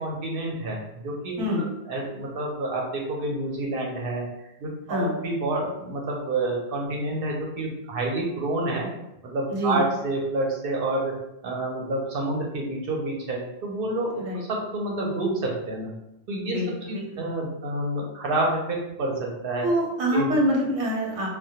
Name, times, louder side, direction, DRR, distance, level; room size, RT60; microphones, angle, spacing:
voice 1, 0.0-1.4 1.9-4.3 4.6-8.9 9.2-11.2 11.4-15.9 16.3-16.6 16.9-19.7 20.1-20.3, right 2 dB, 60° right, -1 dB, 0.7 m, -28 dB
voice 2, 9.5-9.8 14.2-14.4 16.4-17.2 19.6-21.3, equal, 85° right, -2 dB, 1.0 m, -25 dB
2.2 x 2.1 x 2.7 m, 0.87 s
omnidirectional pair, 1.2 m